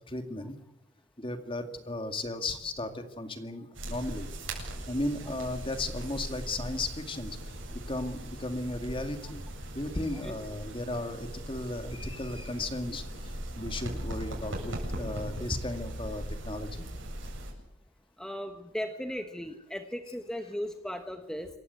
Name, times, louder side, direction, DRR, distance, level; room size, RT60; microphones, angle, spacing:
voice 1, 0.1-0.6 1.2-4.3 4.9-9.4 9.7-16.9, left 2 dB, 25° left, 8 dB, 2.2 m, -35 dB
sound 1, 3.7-17.5, right 1 dB, 80° right, 8.0 m, -39 dB
voice 2, 18.2-21.5, equal, 5° left, 6 dB, 1.2 m, -37 dB
27.5 x 15.0 x 8.2 m, 0.91 s
head